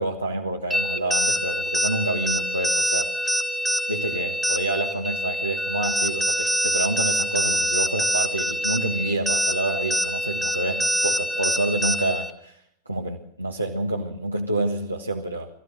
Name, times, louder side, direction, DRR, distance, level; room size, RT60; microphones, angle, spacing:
voice 1, 0.0-3.1 3.9-12.6 12.8-15.5, right 2 dB, 85° right, 0 dB, 1.5 m, -28 dB
sound 1, 0.7-12.3, equal, ahead, 1.3 m, -25 dB
23.0 x 14.5 x 7.8 m, 0.72 s
figure-of-eight pair, 90°, 0 cm